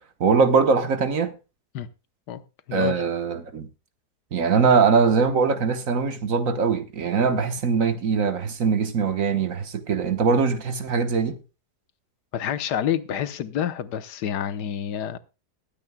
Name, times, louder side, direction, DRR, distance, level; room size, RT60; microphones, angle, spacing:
voice 1, 0.2-1.3 2.7-3.7 4.3-11.4, right 5 dB, 55° right, 1.4 m, -22 dB
voice 2, 12.3-15.2, left 9 dB, 80° left, 1.5 m, -28 dB
21.5 x 8.9 x 2.2 m
omnidirectional pair, 1.8 m